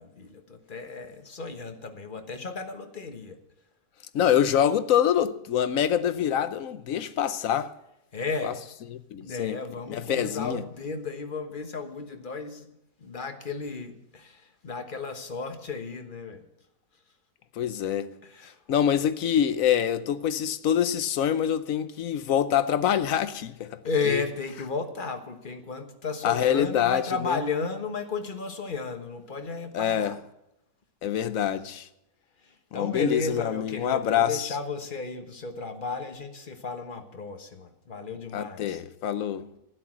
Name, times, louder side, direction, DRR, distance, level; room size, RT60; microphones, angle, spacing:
voice 1, 0.0-3.4 8.1-8.6 9.1-12.7 13.0-16.5 18.2-18.6 23.8-30.2 32.4-38.8, left 4 dB, 30° left, 1.2 m, -34 dB
voice 2, 4.1-7.7 8.4-8.5 8.9-9.6 9.9-10.6 17.6-18.2 18.7-23.8 24.1-24.2 26.2-27.0 27.3-27.4 29.7-30.1 31.0-31.9 32.7-34.5 38.3-39.5, left 9 dB, 65° left, 0.9 m, -25 dB
12.0 x 10.0 x 7.5 m
omnidirectional pair, 1.9 m